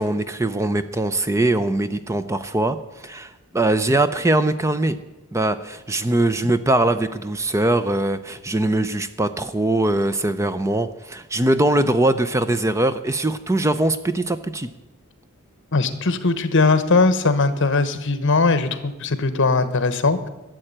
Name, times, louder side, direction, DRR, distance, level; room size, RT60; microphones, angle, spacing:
voice 1, 0.0-5.0 5.3-14.7, right 2 dB, 15° right, 12 dB, 0.5 m, -21 dB
voice 2, 15.7-20.3, left 3 dB, 55° left, 12 dB, 1.1 m, -19 dB
13.5 x 7.7 x 10.0 m, 1.0 s
head